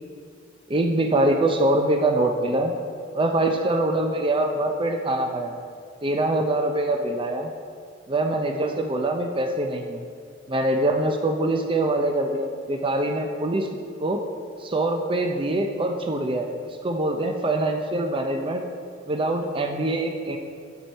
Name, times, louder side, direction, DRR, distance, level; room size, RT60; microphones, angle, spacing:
voice 1, 0.7-2.7 3.1-5.5 6.0-7.5 8.1-10.0 10.5-13.7 14.0-14.2 14.6-18.7 19.1-20.4, right 1 dB, 25° right, 3 dB, 0.5 m, -24 dB
8.7 x 8.2 x 4.4 m, 2.1 s
head